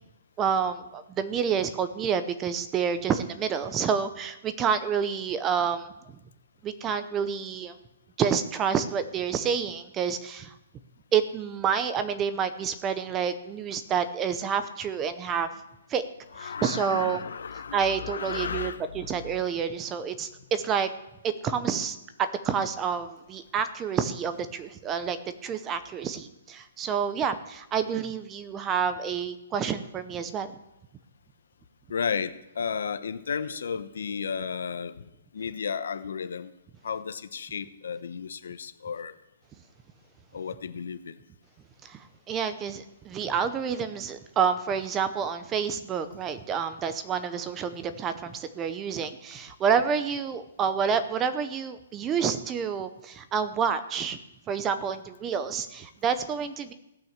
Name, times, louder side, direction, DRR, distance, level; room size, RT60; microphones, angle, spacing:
voice 1, 0.4-6.2 6.6-7.7 8.2-10.5 11.1-15.5 15.9-16.0 16.4-17.2 17.7-20.9 21.2-25.2 25.4-30.6 41.8-54.2 54.5-56.7, right 7 dB, 15° right, 11 dB, 0.6 m, -28 dB
voice 2, 16.3-19.4 31.9-35.0 35.3-36.5 36.8-39.2 40.3-41.2, left 6 dB, 80° left, 12 dB, 0.9 m, -33 dB
16.5 x 6.0 x 7.3 m, 0.90 s
hypercardioid pair, 170°, 0 cm